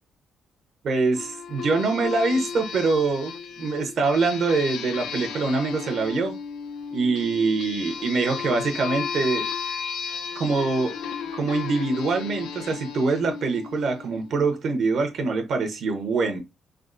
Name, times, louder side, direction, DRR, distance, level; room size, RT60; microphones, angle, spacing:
voice 1, 0.8-6.3 6.9-9.5 10.3-10.9 11.3-16.4, right 3 dB, 60° right, 0.8 m, -24 dB
sound 1, 1.1-14.4, left 6 dB, 80° left, 0.4 m, -34 dB
3.5 x 2.1 x 2.5 m
cardioid pair, 90°, 0 cm